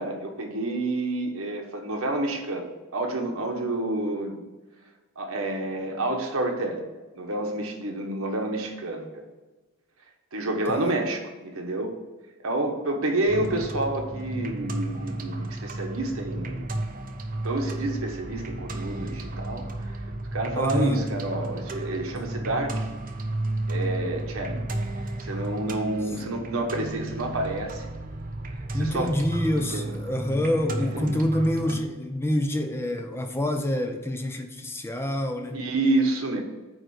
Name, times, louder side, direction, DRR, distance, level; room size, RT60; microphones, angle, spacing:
voice 1, 0.0-4.4 5.2-6.9 7.1-9.2 10.3-11.9 12.4-16.8 17.4-20.0 20.3-22.9 23.7-24.6 25.2-27.9 28.8-29.1 29.7-29.9 30.9-31.2 35.5-36.4, right 2 dB, 80° right, 2 dB, 1.2 m, -29 dB
sound 1, 13.3-31.8, right 1 dB, 40° right, 0.7 m, -33 dB
voice 2, 20.5-21.1 28.7-35.6, left 1 dB, 10° left, 5 dB, 0.5 m, -27 dB
9.0 x 3.1 x 6.4 m, 1.2 s
head